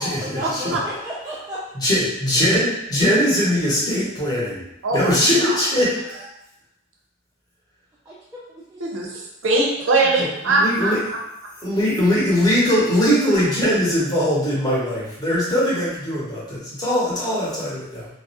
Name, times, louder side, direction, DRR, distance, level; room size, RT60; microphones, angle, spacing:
voice 1, 0.0-1.6 8.1-8.8 17.1-17.3, equal, 15° right, -9 dB, 0.3 m, -34 dB
voice 2, 1.8-4.6 4.9-5.8 10.2-11.0 11.6-18.1, equal, 20° left, -7 dB, 0.7 m, -20 dB
voice 3, 4.8-5.6 8.8-10.9, right 2 dB, 90° right, -1 dB, 0.5 m, -21 dB
2.3 x 2.0 x 2.7 m, 0.81 s
head